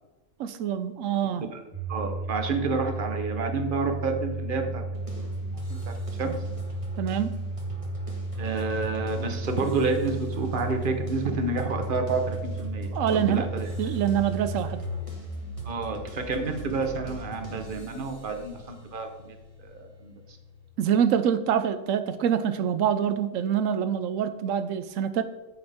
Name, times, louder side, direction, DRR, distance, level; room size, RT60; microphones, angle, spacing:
voice 1, 0.4-1.4 7.0-7.4 12.9-13.5 13.8-14.8 20.8-25.2, right 8 dB, 90° right, 10 dB, 1.0 m, -25 dB
Domestic sounds home sounds, 1.7-18.6, right 2 dB, 45° left, 2.2 m, -34 dB
voice 2, 1.9-5.2 5.9-6.0 6.2-6.4 8.4-13.9 15.6-19.4 19.6-20.4, right 3 dB, 45° right, 5 dB, 1.3 m, -30 dB
sound 1, 4.9-20.7, left 1 dB, 25° right, 1.7 m, -44 dB
10.0 x 7.8 x 3.6 m, 1.1 s
omnidirectional pair, 1.3 m